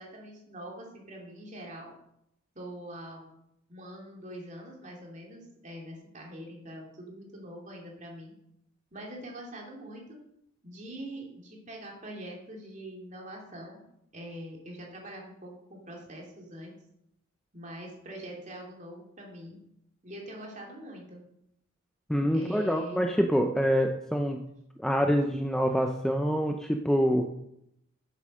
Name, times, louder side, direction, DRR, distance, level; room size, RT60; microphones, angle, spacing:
voice 1, 0.0-1.9 2.5-3.3 3.7-8.3 8.9-10.2 10.6-13.8 14.1-16.7 17.5-19.6 20.0-21.2 22.3-23.0, right 1 dB, 35° right, -1 dB, 2.9 m, -43 dB
voice 2, 22.1-24.5 24.8-27.3, equal, 5° left, 4 dB, 0.5 m, -26 dB
10.0 x 7.6 x 6.3 m, 0.77 s
head